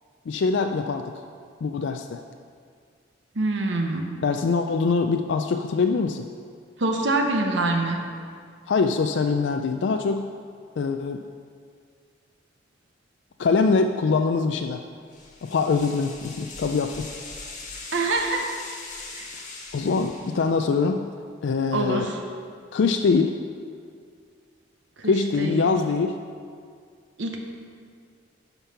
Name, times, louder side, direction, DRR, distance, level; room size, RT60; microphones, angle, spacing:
voice 1, 0.3-1.0 1.6-2.2 4.2-6.3 8.7-10.3 10.8-11.2 13.4-14.8 15.4-17.4 19.7-21.1 21.4-22.1 22.7-23.4 25.0-26.2, left 4 dB, 65° left, 6 dB, 0.4 m, -23 dB
voice 2, 3.4-4.1 6.8-8.0 17.9-18.5 19.1-19.3 21.7-22.2 25.0-25.1 25.4-25.7 27.2-27.4, right 2 dB, 70° right, 3 dB, 0.9 m, -25 dB
sound 1, 15.1-20.7, left 3 dB, 40° left, 1.4 m, -40 dB
10.0 x 5.3 x 5.7 m, 2.1 s
head